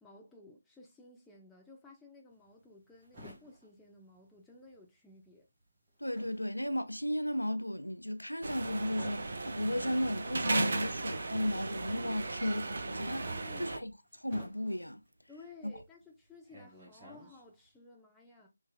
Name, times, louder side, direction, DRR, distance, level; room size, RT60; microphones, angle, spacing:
voice 1, 0.0-5.4 13.3-13.8 15.3-18.5, left 2 dB, 5° left, 0.6 m, -55 dB
sound 1, 2.3-4.9 5.1-17.7, left 1 dB, 25° right, 1.5 m, -55 dB
voice 2, 6.0-13.3 13.6-13.9 14.2-15.0, left 1 dB, 85° left, 0.4 m, -34 dB
sound 2, 8.4-13.8, right 3 dB, 50° right, 0.6 m, -36 dB
3.3 x 3.2 x 2.2 m
figure-of-eight pair, 155°, 0 cm